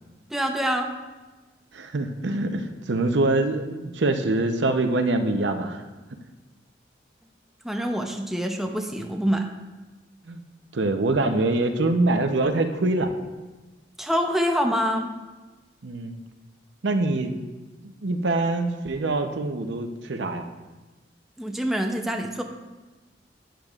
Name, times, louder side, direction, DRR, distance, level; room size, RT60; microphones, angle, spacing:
voice 1, 0.3-0.9 7.6-9.5 14.0-15.1 21.4-22.4, equal, ahead, 3 dB, 0.5 m, -25 dB
voice 2, 1.7-5.8 10.3-10.4 10.7-13.2 15.8-16.2 16.8-17.3 17.8-20.4, right 2 dB, 75° right, 7 dB, 0.7 m, -24 dB
11.5 x 9.0 x 2.4 m, 1.2 s
head